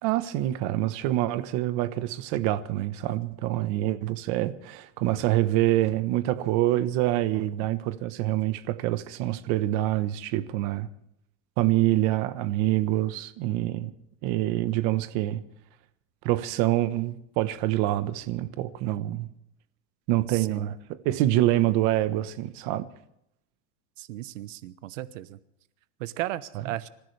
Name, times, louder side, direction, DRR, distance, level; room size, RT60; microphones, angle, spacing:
voice 1, 0.0-10.9 11.6-13.9 14.2-15.4 16.2-19.3 20.1-20.8 21.0-22.9, right 15 dB, 45° right, 1.1 m, -26 dB
voice 2, 20.3-20.7 24.0-25.4 26.0-26.9, right 15 dB, 90° right, 1.1 m, -35 dB
26.5 x 15.0 x 3.3 m
supercardioid pair, 160°, 38 cm